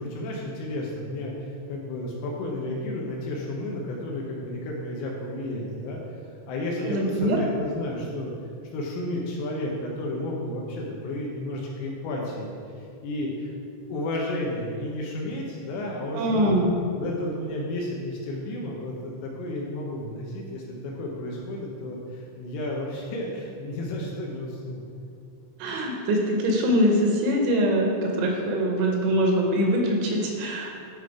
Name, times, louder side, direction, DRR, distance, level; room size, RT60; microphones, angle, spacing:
voice 1, 0.0-6.0 6.5-8.3 8.7-13.5 13.9-16.6 17.0-24.8, left 1 dB, 75° left, -2 dB, 2.8 m, -32 dB
voice 2, 6.8-7.4 16.1-16.7 25.6-30.7, equal, 80° right, 1 dB, 3.0 m, -23 dB
10.5 x 4.4 x 4.7 m, 2.3 s
omnidirectional pair, 5.7 m